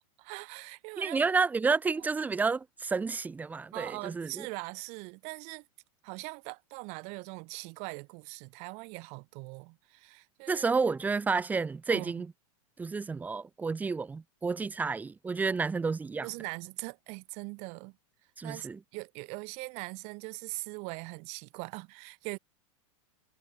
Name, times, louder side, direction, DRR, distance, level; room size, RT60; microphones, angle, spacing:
voice 1, 0.2-1.2 3.7-5.6 6.0-10.6 11.9-12.1 16.2-18.0 18.4-22.4, right 31 dB, 40° right, 4.3 m, -41 dB
voice 2, 1.0-4.5 10.5-12.3 12.8-16.3 18.4-18.8, right 4 dB, 10° right, 1.7 m, -30 dB
supercardioid pair, 160°, 17 cm